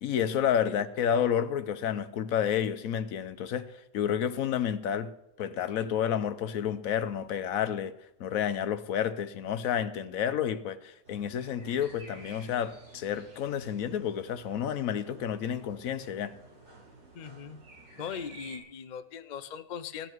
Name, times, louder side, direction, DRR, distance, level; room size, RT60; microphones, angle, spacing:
voice 1, 0.0-7.9 8.2-16.3, left 9 dB, 65° left, 1.1 m, -30 dB
sound 1, 11.0-18.6, right 2 dB, 80° right, 5.9 m, -52 dB
voice 2, 17.1-17.6 18.0-20.1, left 7 dB, 85° left, 0.4 m, -39 dB
16.0 x 10.0 x 4.6 m
omnidirectional pair, 1.7 m